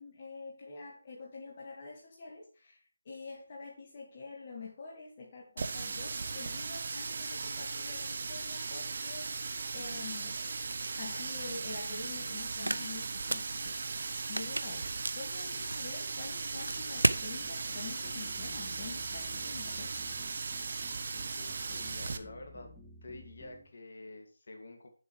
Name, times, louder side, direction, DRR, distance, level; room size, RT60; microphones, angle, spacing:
voice 1, 0.0-2.8 3.1-10.3 11.0-13.8 14.3-14.9 15.1-19.9, left 4 dB, 35° left, -2 dB, 1.7 m, -46 dB
Water tap faucet, 5.6-22.2, right 4 dB, 50° right, 0.7 m, -38 dB
sound 1, 10.6-17.3, right 1 dB, 90° right, 0.5 m, -36 dB
sound 2, 16.8-23.6, equal, 5° left, 2.3 m, -55 dB
voice 2, 21.4-22.7 23.0-24.9, left 2 dB, 55° left, 3 dB, 2.1 m, -48 dB
8.2 x 7.4 x 3.2 m, 0.40 s
figure-of-eight pair, 160°, 0 cm